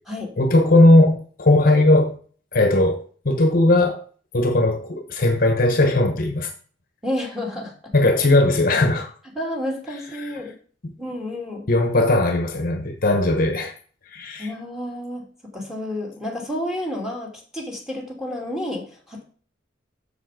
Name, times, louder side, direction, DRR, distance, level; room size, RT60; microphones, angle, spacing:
voice 1, 0.4-2.2 2.5-4.0 4.3-6.5 7.9-9.1 10.2-10.3 11.7-13.7 14.1-14.5, left 2 dB, 50° left, 1.1 m, -18 dB
voice 2, 7.0-7.7 9.3-10.5 11.0-11.7 14.4-15.2 15.5-19.2, left 1 dB, 5° right, 2.8 m, -30 dB
7.2 x 6.9 x 5.1 m
head